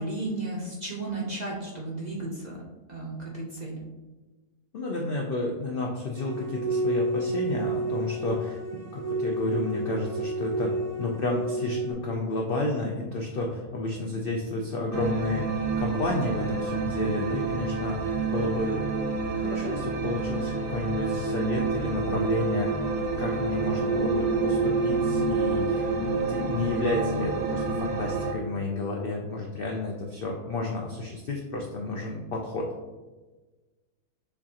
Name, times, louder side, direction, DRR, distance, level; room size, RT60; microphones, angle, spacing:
voice 1, 0.0-2.6 2.9-3.8, right 2 dB, 45° right, -4 dB, 0.5 m, -34 dB
voice 2, 4.7-18.9 19.4-22.9 23.2-32.7, left 2 dB, 75° left, 0 dB, 0.5 m, -31 dB
sound 1, 6.2-11.9, right 1 dB, 55° left, 1.3 m, -30 dB
sound 2, 14.9-28.3, right 4 dB, 80° right, 1.1 m, -28 dB
6.7 x 2.4 x 2.8 m, 1.2 s
omnidirectional pair, 1.6 m